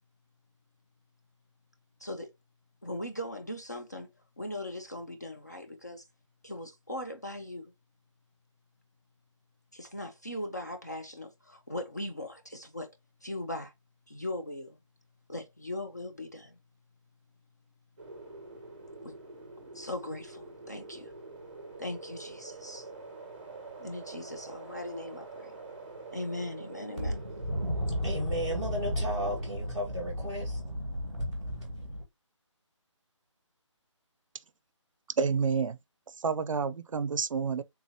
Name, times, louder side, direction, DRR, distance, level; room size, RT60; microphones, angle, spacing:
voice 1, 2.0-2.3 2.8-4.1 4.4-6.1 6.4-7.7 9.7-12.9 13.2-13.7 14.1-14.8 15.3-16.6 19.0-19.2 19.7-21.1 21.8-22.9 23.8-25.5 26.1-27.2, left 1 dB, 35° left, 0.4 m, -39 dB
sound 1, 18.0-29.5, right 3 dB, 20° right, 0.7 m, -46 dB
voice 2, 27.0-32.0, equal, 10° left, 1.0 m, -32 dB
voice 3, 35.2-35.8 36.2-37.6, right 5 dB, 85° right, 0.4 m, -29 dB
3.5 x 2.7 x 2.8 m
hypercardioid pair, 180°, 16 cm